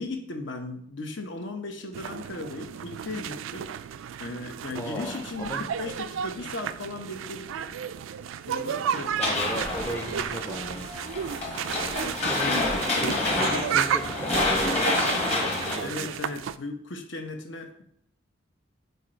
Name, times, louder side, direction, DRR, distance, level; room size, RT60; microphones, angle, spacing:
voice 1, 0.0-3.7 4.2-7.8 8.5-9.5 12.0-13.3 15.8-17.8, left 2 dB, 70° left, 5 dB, 0.9 m, -37 dB
sound 1, 1.9-16.6, right 8 dB, 85° right, 0.3 m, -33 dB
voice 2, 4.8-5.6 9.2-10.9 12.3-16.1, left 1 dB, 10° left, 3 dB, 0.4 m, -36 dB
sound 2, 9.2-15.8, left 2 dB, 35° left, 1.5 m, -28 dB
8.1 x 2.8 x 4.4 m, 0.68 s
head